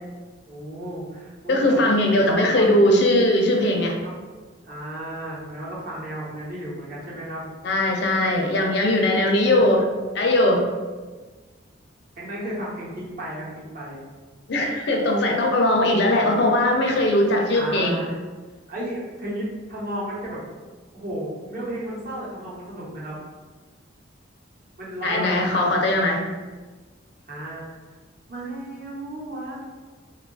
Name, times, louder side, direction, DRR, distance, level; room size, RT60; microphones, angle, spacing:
voice 1, 0.5-1.9 2.2-2.7 4.0-4.1 4.6-7.5 9.5-9.6 12.2-14.0 17.5-18.2 18.7-20.4 20.9-23.2 24.8-25.7 27.3-27.7 28.3-29.6, right 1 dB, 45° right, -6 dB, 1.0 m, -33 dB
voice 2, 1.5-4.0 7.6-9.9 10.1-10.7 14.5-18.0 25.0-26.2, left 1 dB, 60° left, 2 dB, 0.5 m, -20 dB
2.7 x 2.3 x 3.8 m, 1.3 s
head